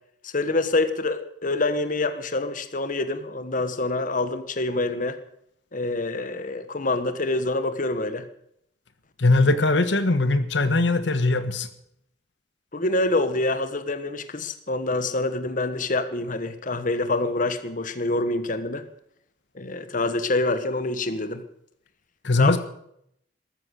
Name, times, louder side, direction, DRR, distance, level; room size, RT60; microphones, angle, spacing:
voice 1, 0.2-5.2 5.7-8.3 12.7-18.8 19.5-21.4 22.4-22.6, left 2 dB, 50° left, 10 dB, 1.4 m, -26 dB
voice 2, 9.2-11.7 22.2-22.6, left 2 dB, 90° left, 11 dB, 1.3 m, -20 dB
13.5 x 13.5 x 6.6 m, 0.72 s
head